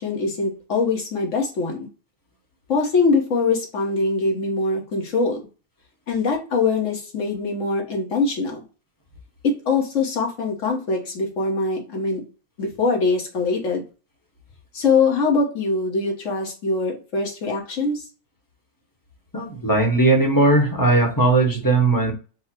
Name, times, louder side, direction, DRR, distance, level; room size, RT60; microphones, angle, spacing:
voice 1, 0.0-1.9 2.7-5.4 6.1-8.6 9.4-12.2 12.6-13.8 14.7-18.0, left 4 dB, 55° left, 0 dB, 1.7 m, -23 dB
voice 2, 19.3-22.1, right 2 dB, 15° left, 0 dB, 1.1 m, -18 dB
4.5 x 2.3 x 4.4 m, 0.34 s
omnidirectional pair, 1.6 m